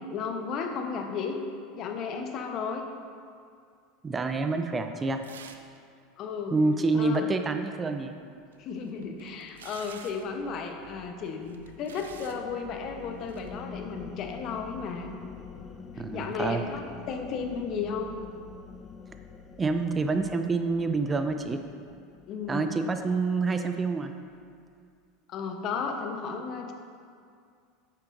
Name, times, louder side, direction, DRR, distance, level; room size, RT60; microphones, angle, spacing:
voice 1, 0.1-1.4 1.7-2.9 6.2-6.6 7.0-7.3 8.6-15.1 16.1-16.8 17.1-18.1 22.3-22.7 25.3-26.7, left 5 dB, 50° left, 4 dB, 0.9 m, -34 dB
voice 2, 4.0-5.2 6.5-8.2 16.0-16.6 19.6-21.6 22.5-24.1, right 3 dB, 25° right, 7 dB, 0.5 m, -27 dB
sound 1, 5.2-5.8 6.0-6.1 8.5-10.3 11.3-12.4 13.2-13.5, right 7 dB, 85° right, 0.5 m, -49 dB
sound 2, 8.6-23.1, left 6 dB, 30° left, 0.5 m, -46 dB
9.5 x 8.5 x 2.6 m, 2.3 s
hypercardioid pair, 90°, 0 cm